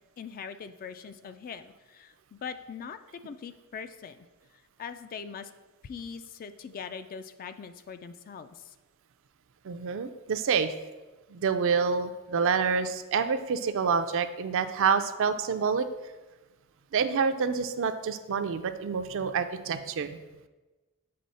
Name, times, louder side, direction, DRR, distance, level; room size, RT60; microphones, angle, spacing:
voice 1, 0.0-4.3 4.8-5.5 5.8-8.7, left 6 dB, 40° left, 10 dB, 0.3 m, -42 dB
voice 2, 9.6-10.7 11.3-15.9 16.9-20.2, right 6 dB, 60° right, 10 dB, 0.4 m, -27 dB
7.7 x 3.7 x 4.1 m, 1.2 s
head